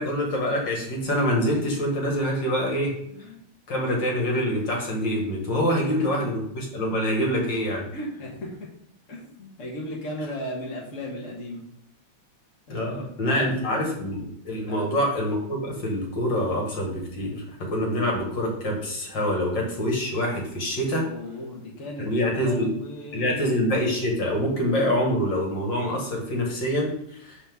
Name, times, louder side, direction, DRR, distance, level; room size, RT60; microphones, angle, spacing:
voice 1, 0.0-2.9 3.7-7.8 12.7-21.1 22.1-22.7 23.1-27.4, equal, 55° left, 0 dB, 2.5 m, -25 dB
voice 2, 3.1-3.5 5.7-5.8 7.9-8.5 9.1-11.6 12.7-13.5 14.7-14.9 21.0-23.6, equal, 40° left, -2 dB, 1.6 m, -36 dB
11.5 x 4.4 x 3.7 m, 0.72 s
omnidirectional pair, 2.4 m